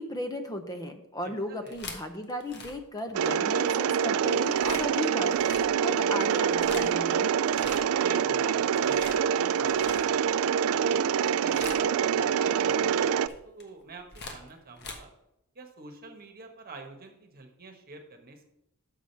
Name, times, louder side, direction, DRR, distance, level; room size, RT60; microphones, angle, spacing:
voice 1, 0.0-5.4 5.8-7.3, left 1 dB, 15° left, 7 dB, 0.7 m, -35 dB
voice 2, 1.2-1.8 7.5-10.7 11.2-15.1 15.5-18.5, right 3 dB, 40° right, 4 dB, 1.3 m, -47 dB
sound 1, 1.5-3.6 4.6-4.9 5.3-5.9 6.4-7.0 7.4-8.1 8.4-10.4 11.0-11.2 11.5-12.1 12.9-14.9, left 3 dB, 50° left, 1.2 m, -43 dB
Mechanisms, 3.1-13.3, right 8 dB, 65° right, 0.3 m, -25 dB
6.5 x 5.0 x 6.8 m, 0.85 s
head